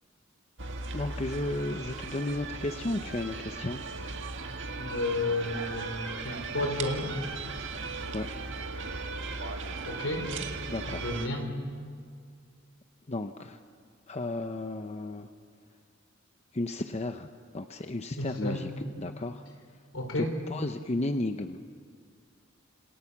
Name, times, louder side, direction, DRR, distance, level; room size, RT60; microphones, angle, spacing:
sound 1, 0.6-11.3, right 3 dB, 60° right, 1.8 m, -37 dB
voice 1, 0.9-3.8 8.1-8.3 10.7-11.2 13.1-13.6 14.1-15.3 16.5-17.3 17.5-19.4 20.1-20.2 20.5-21.6, left 2 dB, 30° left, 7 dB, 0.8 m, -33 dB
voice 2, 4.8-7.2 9.8-10.3 11.0-11.5 18.2-18.7 19.9-20.3, left 2 dB, 75° left, 3 dB, 5.0 m, -32 dB
27.5 x 26.0 x 7.3 m, 2.1 s
head